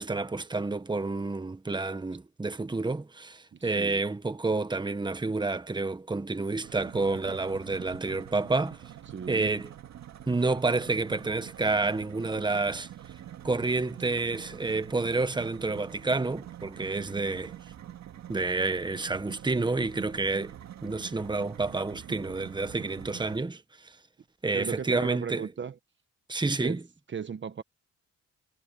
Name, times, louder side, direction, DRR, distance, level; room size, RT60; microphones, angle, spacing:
voice 1, 0.0-8.8 9.3-9.7 10.3-12.9 13.4-17.5 18.3-20.5 20.8-23.9 24.4-25.4 26.3-26.8, right 3 dB, 15° right, 1.4 m, -29 dB
voice 2, 3.5-4.0 9.1-9.6 24.5-25.8 26.6-26.8 27.1-27.6, right 7 dB, 40° right, 1.2 m, -36 dB
sound 1, 6.6-23.4, right 11 dB, 65° right, 2.1 m, -46 dB
cardioid pair, 90°, 30 cm